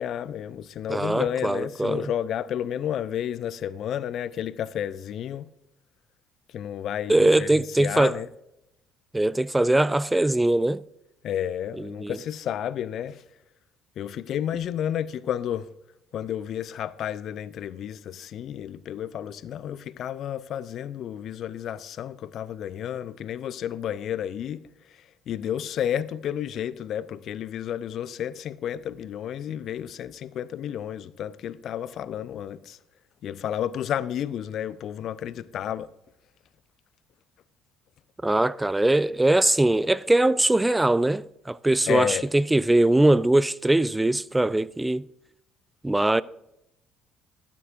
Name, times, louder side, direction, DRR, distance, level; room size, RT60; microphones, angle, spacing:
voice 1, 0.0-5.5 6.5-8.3 11.2-13.2 14.0-15.7 16.1-24.7 25.3-32.8 33.2-35.9 41.9-42.3, left 10 dB, 50° left, 0.5 m, -31 dB
voice 2, 0.9-2.1 7.1-8.2 9.1-10.8 11.8-12.2 38.2-45.0 45.8-46.2, right 1 dB, 10° right, 0.3 m, -21 dB
12.0 x 12.0 x 2.5 m
figure-of-eight pair, 50°, 0 cm